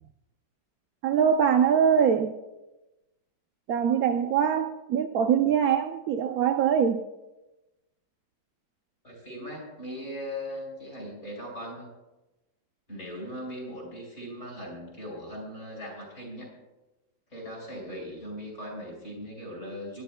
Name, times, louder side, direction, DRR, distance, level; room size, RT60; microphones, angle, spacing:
voice 1, 1.0-2.3 3.7-7.0, right 8 dB, 70° right, 7 dB, 0.8 m, -23 dB
voice 2, 9.0-11.9 12.9-16.5 17.3-20.0, equal, 35° left, 0 dB, 5.0 m, -39 dB
25.0 x 11.0 x 2.2 m, 1.0 s
omnidirectional pair, 2.1 m